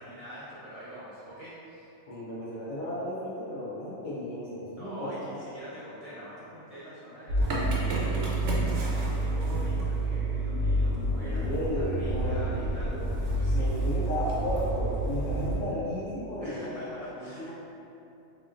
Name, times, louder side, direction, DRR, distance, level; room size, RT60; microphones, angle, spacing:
voice 1, 0.0-1.9 4.8-11.5 11.7-12.9 13.3-13.7 16.4-17.5, right 1 dB, 30° right, -12 dB, 0.8 m, -45 dB
voice 2, 2.1-5.1 11.1-13.0 13.5-17.5, left 1 dB, 75° left, -8 dB, 1.1 m, -34 dB
Motor vehicle (road) / Engine starting, 7.3-15.6, right 2 dB, 70° right, 0.8 m, -28 dB
3.6 x 2.4 x 2.5 m, 2.8 s
omnidirectional pair, 1.4 m